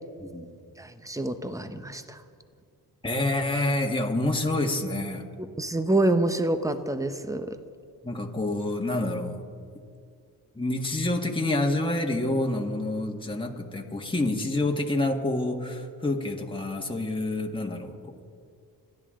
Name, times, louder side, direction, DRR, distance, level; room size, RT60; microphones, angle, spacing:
voice 1, 0.8-2.2 5.6-7.6, right 2 dB, 10° right, 9 dB, 1.1 m, -27 dB
voice 2, 3.0-5.3 8.0-9.5 10.6-18.0, left 2 dB, 10° left, 1 dB, 1.8 m, -28 dB
29.0 x 10.5 x 3.8 m, 2.2 s
cardioid pair, 60°, 40 cm